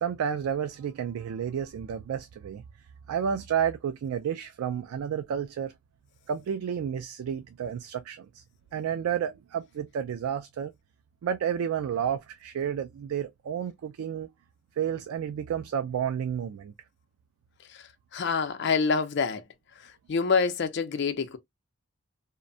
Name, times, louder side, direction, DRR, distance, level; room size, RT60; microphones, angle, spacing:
voice 1, 0.0-2.6 3.1-5.7 6.3-8.4 8.7-10.7 11.2-14.3 14.8-16.7, right 8 dB, 85° right, 0.3 m, -31 dB
voice 2, 18.1-19.4 20.1-21.4, left 5 dB, 55° left, 0.4 m, -26 dB
2.5 x 2.1 x 2.5 m
head